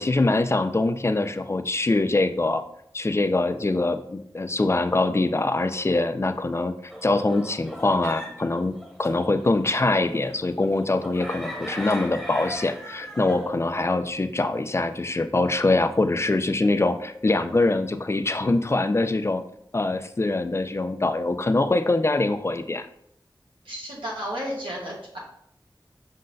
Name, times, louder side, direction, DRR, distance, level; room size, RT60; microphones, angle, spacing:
voice 1, 0.0-2.6 2.9-19.4 19.7-22.9, left 2 dB, 30° left, 9 dB, 0.4 m, -23 dB
sound 1, 6.9-13.5, equal, 5° right, 1.1 m, -39 dB
voice 2, 23.6-25.2, equal, 80° right, -5 dB, 1.2 m, -33 dB
5.4 x 3.9 x 2.5 m, 0.71 s
wide cardioid pair, 50°, 9 cm